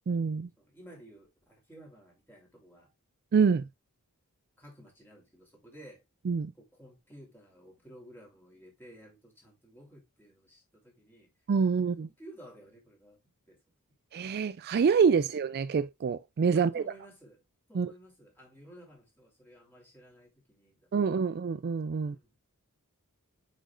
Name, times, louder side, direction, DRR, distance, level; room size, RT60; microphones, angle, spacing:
voice 1, 0.1-0.5 3.3-3.7 6.3-6.5 11.5-12.1 14.1-16.8 17.7-17.9 20.9-22.2, right 5 dB, 45° right, 0.3 m, -26 dB
voice 2, 0.6-2.9 4.6-6.0 6.5-11.3 12.0-13.2 13.5-13.6 16.5-17.4 17.7-20.9 21.2-21.3 22.0-22.4, right 1 dB, 10° left, 3.0 m, -54 dB
7.4 x 5.2 x 2.4 m
head